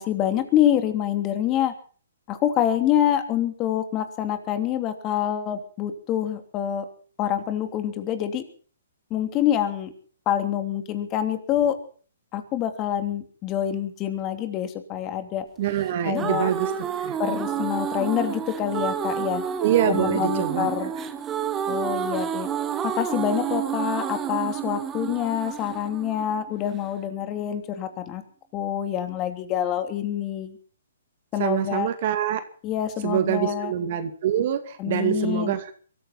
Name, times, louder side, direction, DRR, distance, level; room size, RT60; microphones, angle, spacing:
voice 1, 0.0-1.7 2.3-6.8 7.2-8.4 9.1-9.9 10.2-11.7 12.3-15.4 16.0-16.5 17.2-19.4 19.9-20.9 21.6-22.5 22.8-28.2 28.5-30.6 31.3-31.9 32.6-33.7 34.8-35.6, left 10 dB, 25° left, 7 dB, 3.1 m, -26 dB
voice 2, 15.6-16.7 17.0-17.2 19.6-21.0 31.4-32.4 33.0-35.7, right 10 dB, 50° right, 9 dB, 2.3 m, -25 dB
sound 1, 15.8-26.9, right 8 dB, 15° right, 1.5 m, -29 dB
23.5 x 14.0 x 4.2 m, 0.42 s
hypercardioid pair, 140°, 0 cm